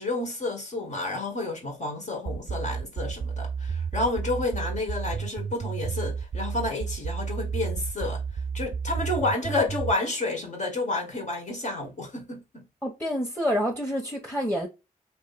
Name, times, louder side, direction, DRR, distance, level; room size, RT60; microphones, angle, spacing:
voice 1, 0.0-12.7, left 2 dB, 50° left, 1.6 m, -30 dB
sound 1, 2.3-9.9, right 6 dB, 45° right, 0.5 m, -31 dB
voice 2, 12.8-14.7, equal, 10° left, 1.2 m, -28 dB
3.0 x 2.7 x 4.1 m
cardioid pair, 50°, 15 cm